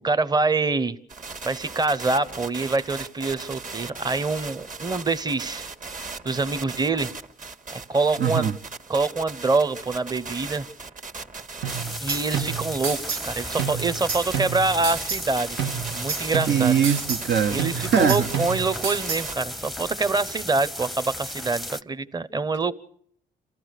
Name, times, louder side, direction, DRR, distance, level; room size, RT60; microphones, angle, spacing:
voice 1, 0.0-1.0 1.4-5.7 6.2-7.1 7.7-8.5 8.9-10.6 12.0-15.6 15.9-16.8 17.5-22.7, right 3 dB, 20° right, 0.9 m, -25 dB
sound 1, 1.1-19.3, right 4 dB, 40° right, 1.7 m, -38 dB
voice 2, 8.2-8.5 16.5-18.3, right 7 dB, 65° right, 0.9 m, -22 dB
sound 2, 11.6-13.3 13.6-15.3 15.6-17.3 17.6-19.3, right 7 dB, 90° right, 1.8 m, -30 dB
sound 3, 11.7-21.8, left 1 dB, ahead, 0.7 m, -35 dB
28.0 x 14.5 x 6.6 m
cardioid pair, 90°, 20 cm